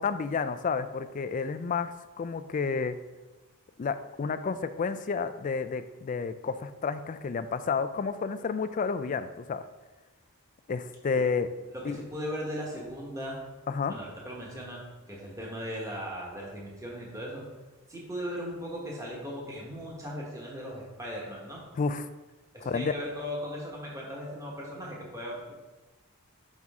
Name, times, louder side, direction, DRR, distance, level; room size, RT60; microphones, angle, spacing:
voice 1, 0.0-3.0 3.8-9.6 10.7-11.5 11.8-12.0 13.7-13.9 21.8-22.1 22.6-22.9, left 5 dB, 35° left, 11 dB, 0.3 m, -30 dB
voice 2, 11.9-13.4 13.9-17.5 17.9-21.6 22.5-25.5, equal, 15° right, -3 dB, 1.3 m, -38 dB
6.0 x 5.4 x 3.6 m, 1.1 s
head